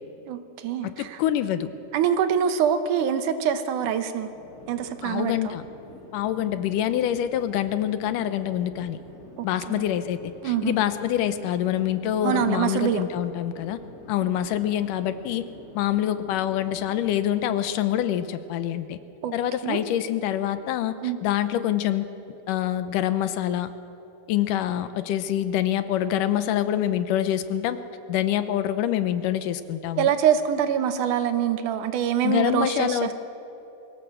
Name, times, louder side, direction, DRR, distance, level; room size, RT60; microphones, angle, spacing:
voice 1, 0.3-1.2 1.9-4.3 4.7-5.6 9.4-9.8 10.4-10.7 12.2-13.0 19.2-19.3 19.6-19.8 21.0-21.2 30.0-33.1, right 8 dB, 75° right, 10 dB, 2.4 m, -25 dB
voice 2, 1.0-1.7 5.0-5.6 6.1-9.0 9.4-10.2 10.4-13.8 14.1-15.4 15.8-19.0 19.3-20.9 21.2-22.1 22.5-23.7 24.3-27.8 28.1-30.1 32.2-33.1, left 11 dB, 90° left, 11 dB, 2.4 m, -25 dB
Chatter / Fixed-wing aircraft airplane, 4.1-17.5, left 2 dB, 30° left, 2.0 m, -48 dB
23.0 x 16.0 x 7.5 m, 2.9 s
omnidirectional pair, 3.7 m